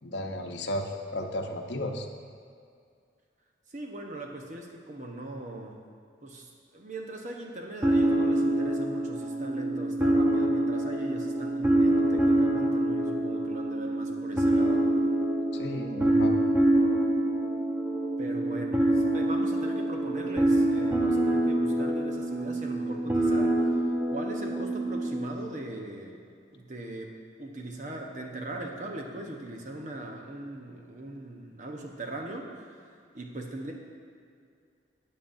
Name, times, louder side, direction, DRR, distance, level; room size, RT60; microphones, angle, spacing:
voice 1, 0.0-2.1 15.5-16.4, left 1 dB, 75° left, 2 dB, 0.8 m, -34 dB
voice 2, 3.7-5.8 6.2-14.8 18.2-23.8 24.1-26.2 26.5-32.8 33.1-33.7, right 1 dB, 45° right, 1 dB, 1.0 m, -40 dB
sound 1, 7.8-25.3, right 1 dB, 10° right, 0.7 m, -26 dB
12.5 x 8.5 x 2.6 m, 2.2 s
head